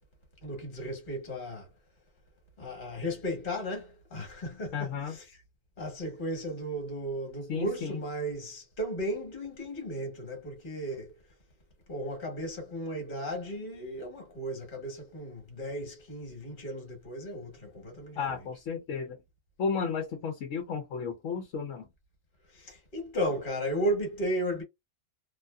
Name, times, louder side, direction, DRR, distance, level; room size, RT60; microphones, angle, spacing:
voice 1, 0.4-1.7 2.6-5.2 5.8-11.1 11.9-18.2 22.5-24.6, equal, 40° left, 1.3 m, -35 dB
voice 2, 4.7-5.2 7.5-8.0 18.2-19.2 19.6-21.9, left 6 dB, 75° left, 1.0 m, -33 dB
2.6 x 2.6 x 2.2 m
omnidirectional pair, 1.3 m